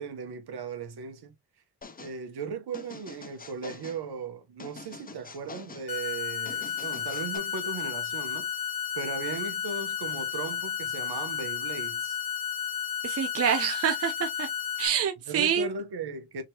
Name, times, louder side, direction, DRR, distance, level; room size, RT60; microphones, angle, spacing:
voice 1, 0.0-1.3 2.0-8.6 8.9-12.2 15.3-16.4, right 5 dB, 55° right, 1.0 m, -37 dB
sound 1, 1.8-2.2 2.7-4.0 4.6-5.9 6.4-7.4, left 4 dB, 20° left, 0.6 m, -45 dB
sound 2, 5.9-14.9, left 8 dB, 50° left, 1.1 m, -32 dB
voice 2, 13.0-14.5 14.8-15.7, right 8 dB, 30° right, 0.6 m, -27 dB
2.8 x 2.8 x 2.9 m
hypercardioid pair, 40°, 48 cm